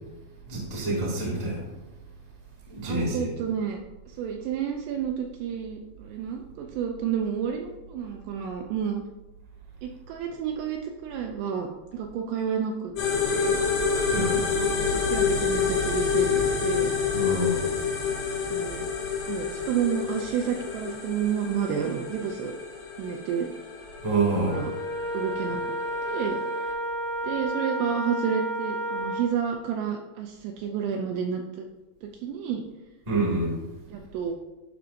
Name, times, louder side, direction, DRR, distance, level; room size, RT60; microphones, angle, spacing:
voice 1, 0.5-1.6 2.7-3.3 14.1-14.5 17.1-17.6 24.0-24.6 33.1-33.5, right 2 dB, 30° right, -4 dB, 0.6 m, -27 dB
voice 2, 2.8-3.8 4.1-9.0 9.8-12.9 13.3-13.6 14.2-16.3 16.5-16.9 18.5-18.9 19.3-22.5 23.0-23.5 24.5-24.7 25.1-25.6 26.1-26.7 27.2-31.7 32.0-32.6 33.9-34.3, right 8 dB, 85° right, 3 dB, 2.5 m, -30 dB
sound 1, 13.0-26.7, left 6 dB, 60° left, 3.6 m, -28 dB
Wind instrument woodwind instrument, 24.4-29.3, equal, 80° left, 1.3 m, -31 dB
11.5 x 5.7 x 2.6 m, 1.1 s
omnidirectional pair, 5.3 m